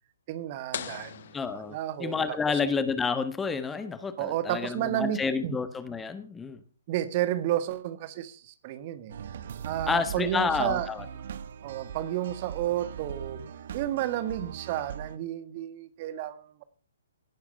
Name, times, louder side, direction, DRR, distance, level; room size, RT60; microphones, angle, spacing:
voice 1, 0.3-1.2 1.7-2.6 4.2-5.6 6.9-9.1 9.6-10.9 11.6-13.4 13.7-16.6, right 12 dB, 35° right, 14 dB, 1.5 m, -31 dB
sound 1, 0.7-2.4, left 9 dB, 50° left, 1.2 m, -40 dB
voice 2, 1.3-6.6 9.9-11.0, left 5 dB, 10° left, 11 dB, 1.4 m, -30 dB
sound 2, 9.1-15.2, right 8 dB, 50° right, 1.2 m, -40 dB
18.0 x 11.5 x 5.6 m, 0.39 s
figure-of-eight pair, 130°, 0 cm